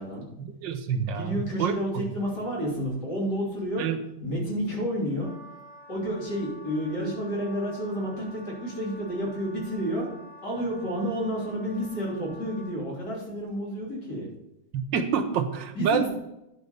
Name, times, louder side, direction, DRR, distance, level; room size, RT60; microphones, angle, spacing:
voice 1, 0.4-1.8 3.8-4.0 14.7-16.1, right 7 dB, 65° right, 7 dB, 1.6 m, -27 dB
voice 2, 1.1-5.3 5.9-10.1 10.4-14.3 15.7-16.1, equal, 50° left, -4 dB, 4.0 m, -30 dB
Wind instrument woodwind instrument, 5.2-12.8, equal, 15° left, 3.0 m, -49 dB
9.9 x 4.9 x 6.7 m, 0.88 s
omnidirectional pair, 2.3 m